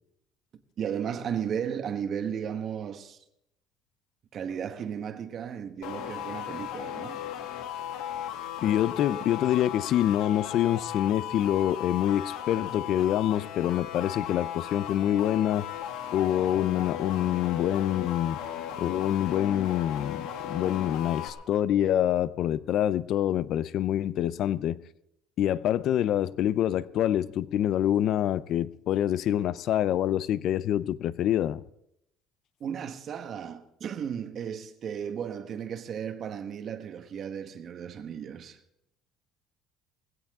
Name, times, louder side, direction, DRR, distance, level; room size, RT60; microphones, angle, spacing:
voice 1, 0.8-3.2 4.3-7.2 32.6-38.6, right 8 dB, 40° right, 1.4 m, -35 dB
sound 1, 5.8-21.3, left 10 dB, 90° left, 2.6 m, -36 dB
voice 2, 8.6-15.7 16.1-18.4 18.8-24.8 25.4-31.6, left 11 dB, 50° left, 0.6 m, -26 dB
19.0 x 16.5 x 3.7 m
cardioid pair, 150°, 0 cm